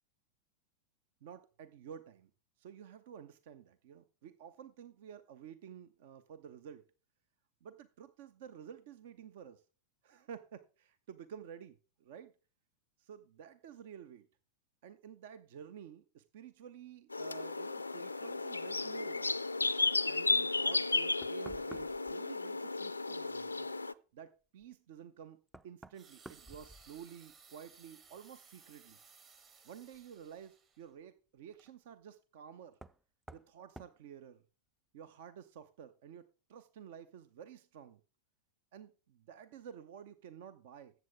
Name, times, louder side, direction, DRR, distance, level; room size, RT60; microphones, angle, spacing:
voice 1, 1.2-2.3 2.6-6.9 7.6-9.6 10.0-12.3 13.0-14.3 14.8-19.3 20.0-23.7 24.1-29.0 29.6-32.8 33.3-34.4 34.9-38.0 38.7-40.9, right 8 dB, 55° right, 0.7 m, -52 dB
sound 1, 17.1-23.9, left 3 dB, 80° left, 0.4 m, -34 dB
Knock, 21.2-22.2 24.6-24.7 25.5-27.3 27.6-28.2 29.9-30.0 32.7-33.0 33.3-33.5 33.8-34.0, right 1 dB, 5° right, 0.5 m, -53 dB
sound 2, 25.9-30.9 31.5-31.7, right 5 dB, 30° right, 1.8 m, -61 dB
14.0 x 8.0 x 3.5 m
figure-of-eight pair, 90°, 0 cm